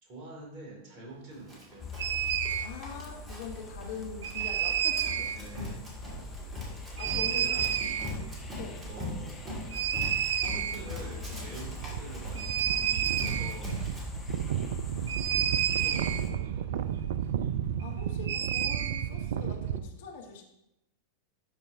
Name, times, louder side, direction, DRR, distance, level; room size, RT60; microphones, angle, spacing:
voice 1, 0.0-2.0 5.3-5.8 6.5-6.6 7.0-7.9 8.9-9.6 10.5-13.8 15.7-17.0, right 2 dB, 40° right, -1 dB, 2.3 m, -46 dB
Run, 1.5-14.0, left 1 dB, 20° right, 2.2 m, -41 dB
sound 1, 1.8-16.3, left 2 dB, 15° left, 1.0 m, -42 dB
sound 2, 2.0-2.7 4.2-5.4 7.0-8.1 9.7-11.0 11.3-11.4 11.5-19.8, right 10 dB, 60° right, 0.4 m, -30 dB
voice 2, 2.6-5.3 5.6-5.7 7.0-7.7 8.5-8.8 17.8-20.4, left 5 dB, 55° left, 3 dB, 1.0 m, -43 dB
12.0 x 4.8 x 2.7 m, 0.85 s
figure-of-eight pair, 90°, 0 cm